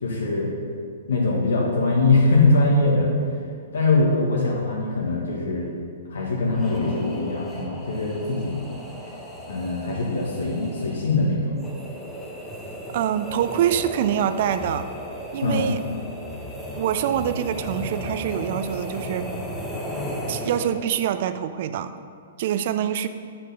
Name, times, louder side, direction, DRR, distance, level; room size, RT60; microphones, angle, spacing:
voice 1, 0.0-0.5 1.1-3.1 3.7-5.7 6.1-8.6 9.5-11.6 15.4-15.7, left 2 dB, 65° left, -2 dB, 1.5 m, -22 dB
sound 1, 6.5-21.0, equal, 5° left, 1.0 m, -35 dB
voice 2, 12.9-14.9 15.3-15.8 16.8-19.3 20.3-21.9 22.4-23.1, right 10 dB, 50° right, 11 dB, 0.4 m, -25 dB
9.7 x 4.4 x 4.1 m, 2.2 s
figure-of-eight pair, 110°, 0 cm